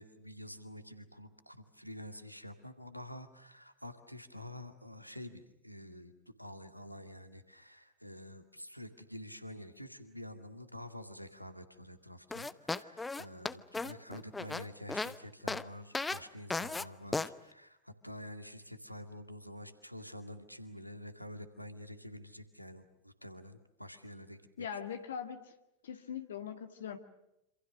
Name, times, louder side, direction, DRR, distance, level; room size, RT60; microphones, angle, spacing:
voice 1, 0.0-24.7, left 1 dB, 90° left, 9 dB, 2.2 m, -48 dB
sound 1, 12.3-15.1 15.5-15.6 15.9-16.2 16.5-16.8 17.1-17.3, left 3 dB, 10° left, 1.0 m, -35 dB
voice 2, 24.6-25.5 25.8-27.0, left 8 dB, 60° left, 8 dB, 2.0 m, -41 dB
28.0 x 27.0 x 6.4 m, 0.86 s
figure-of-eight pair, 90°, 0 cm